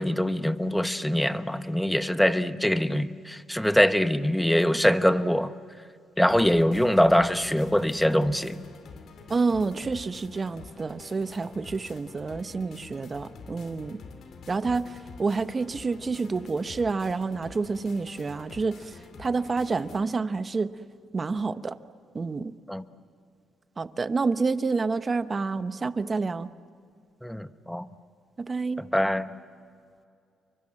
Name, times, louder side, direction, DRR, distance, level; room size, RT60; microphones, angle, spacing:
voice 1, 0.0-5.5 6.2-8.6 22.7-22.8 27.2-27.9 28.8-29.4, equal, 5° left, 11 dB, 1.0 m, -23 dB
sound 1, 6.3-20.0, left 4 dB, 65° left, 2.9 m, -47 dB
voice 2, 9.3-14.0 14.5-20.7 21.1-21.8 22.1-22.5 23.8-26.5 28.4-28.8, right 4 dB, 30° right, 12 dB, 1.0 m, -28 dB
29.0 x 24.0 x 7.7 m, 2.3 s
cardioid pair, 90°, 0 cm